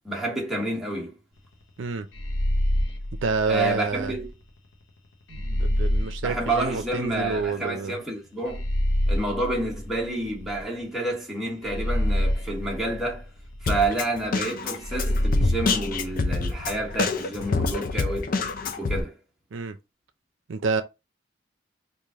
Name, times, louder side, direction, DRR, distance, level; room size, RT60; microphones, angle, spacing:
voice 1, 0.0-1.2 3.5-4.3 6.2-8.6 9.1-13.3 13.6-18.4 18.8-19.2, right 2 dB, ahead, 1.0 m, -29 dB
sound 1, 2.1-4.3 5.3-7.5 8.5-10.8 11.6-13.8 14.8-17.0, left 1 dB, 90° left, 0.8 m, -27 dB
voice 2, 3.2-4.1 5.3-7.9 19.5-19.8 20.5-20.8, right 4 dB, 80° right, 0.5 m, -28 dB
Drum kit, 13.7-19.0, left 4 dB, 45° left, 0.4 m, -27 dB
3.2 x 2.6 x 3.5 m
head